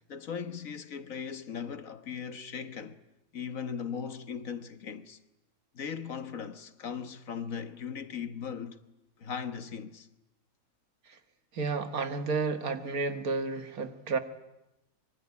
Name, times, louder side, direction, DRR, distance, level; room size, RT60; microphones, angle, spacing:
voice 1, 0.1-3.0 3.3-5.2 5.8-8.8 9.2-10.1, left 7 dB, 65° left, 1.7 m, -38 dB
voice 2, 11.5-14.2, right 4 dB, 80° right, 2.1 m, -31 dB
25.0 x 23.5 x 9.7 m
omnidirectional pair, 1.5 m